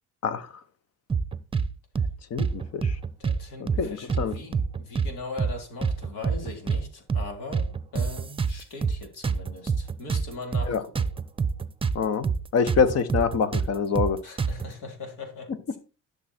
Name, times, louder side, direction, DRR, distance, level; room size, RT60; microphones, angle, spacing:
sound 1, 1.1-1.7 1.9-2.1 2.4-3.4 3.7-3.8 4.1-5.1 5.4-5.5 5.8-6.8 7.1-7.3 7.5-9.0 9.2-12.0 12.2-12.4 12.7-14.7, right 5 dB, 15° right, 0.8 m, -26 dB
voice 1, 2.3-2.9 3.8-4.3 10.7-10.8 11.9-12.3 12.5-14.2, left 6 dB, 50° left, 1.2 m, -25 dB
voice 2, 3.2-11.1 14.2-15.8, left 3 dB, 75° left, 3.7 m, -40 dB
11.0 x 6.6 x 4.5 m
cardioid pair, 105°, 32 cm